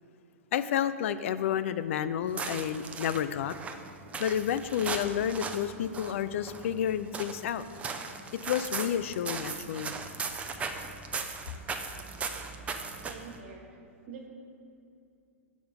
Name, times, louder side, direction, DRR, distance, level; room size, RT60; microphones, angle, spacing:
voice 1, 0.5-3.5 4.2-7.6 8.4-9.9, left 9 dB, 55° left, 13 dB, 0.3 m, -30 dB
sound 1, 2.2-13.4, right 4 dB, 15° right, 0.5 m, -38 dB
voice 2, 13.0-13.8 14.1-14.3, right 5 dB, 55° right, 1 dB, 1.6 m, -45 dB
7.2 x 5.0 x 5.8 m, 2.5 s
hypercardioid pair, 110°, 8 cm